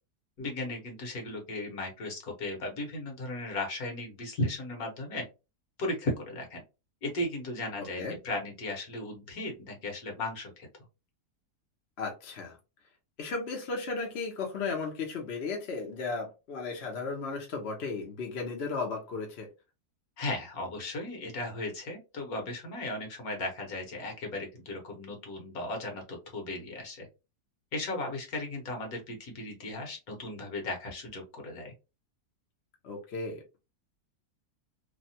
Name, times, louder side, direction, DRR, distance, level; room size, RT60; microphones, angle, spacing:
voice 1, 0.4-5.2 5.8-6.6 7.0-10.7 20.2-27.1 27.7-31.7, left 2 dB, 65° left, 2 dB, 1.5 m, -36 dB
voice 2, 7.8-8.2 12.0-12.6 13.2-19.5 32.8-33.4, left 4 dB, 50° left, 1 dB, 0.9 m, -35 dB
3.2 x 2.3 x 2.7 m, 0.27 s
omnidirectional pair, 1.7 m